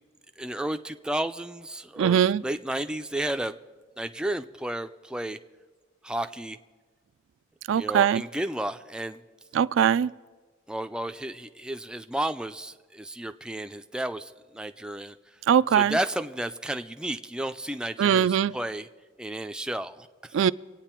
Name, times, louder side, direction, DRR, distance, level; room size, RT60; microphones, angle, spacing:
voice 1, 0.4-3.6 4.0-5.4 6.0-6.6 7.7-9.2 10.7-15.4 15.7-18.9 19.2-20.4, right 1 dB, 5° right, 0.4 m, -32 dB
voice 2, 2.0-2.4 7.7-8.2 9.6-10.1 15.5-15.9 18.0-18.5 20.3-20.5, right 8 dB, 90° right, 0.3 m, -21 dB
25.0 x 9.0 x 4.4 m
head